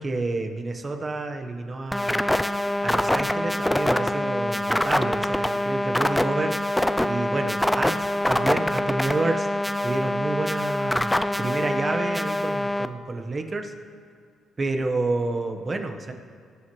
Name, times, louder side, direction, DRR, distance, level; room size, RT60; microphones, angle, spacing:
voice 1, 0.0-2.2 2.8-6.5 7.0-9.5 9.8-11.1 11.4-13.7 14.6-16.1, right 3 dB, 30° right, 5 dB, 1.1 m, -29 dB
sound 1, 1.9-12.9, left 1 dB, 5° left, 0.4 m, -25 dB
22.0 x 7.4 x 3.1 m, 2.2 s
cardioid pair, 90°, 0 cm